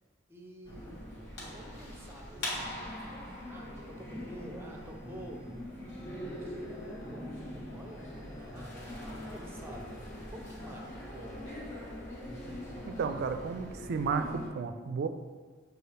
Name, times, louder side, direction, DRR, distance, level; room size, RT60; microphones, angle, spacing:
voice 1, 0.3-1.0 1.5-2.8 3.5-5.5 6.2-11.4, right 1 dB, 10° right, 0 dB, 0.6 m, -49 dB
sound 1, 0.6-14.5, left 1 dB, 60° left, 1.3 m, -42 dB
voice 2, 12.9-15.1, right 5 dB, 55° right, 9 dB, 0.3 m, -33 dB
6.5 x 2.4 x 3.3 m, 1.4 s
head